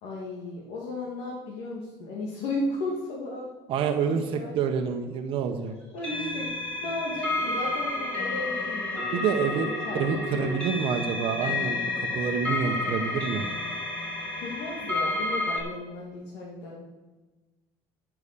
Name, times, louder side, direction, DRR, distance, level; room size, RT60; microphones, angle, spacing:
voice 1, 0.0-3.5 4.0-4.5 5.9-6.5 6.8-9.2 9.6-10.7 14.4-16.8, left 2 dB, 70° left, -4 dB, 2.6 m, -35 dB
voice 2, 3.7-5.7 9.1-13.4, right 6 dB, 60° right, 5 dB, 1.2 m, -28 dB
sound 1, 6.0-15.6, left 2 dB, 10° left, 4.8 m, -30 dB
14.0 x 6.2 x 6.9 m, 1.2 s
supercardioid pair, 110°, 10 cm